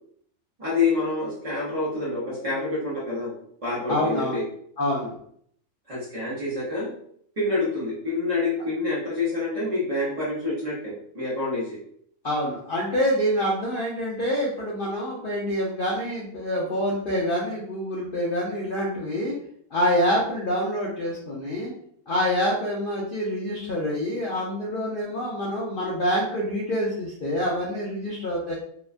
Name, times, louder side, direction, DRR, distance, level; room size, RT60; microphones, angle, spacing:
voice 1, 0.6-3.3 3.6-4.4 5.9-6.9 7.4-11.8, left 3 dB, 35° right, -8 dB, 0.5 m, -27 dB
voice 2, 3.9-4.4 4.8-5.1 12.2-19.3 19.7-21.7 22.1-28.5, equal, 70° left, -4 dB, 0.5 m, -26 dB
2.8 x 2.2 x 2.4 m, 0.65 s
omnidirectional pair, 1.5 m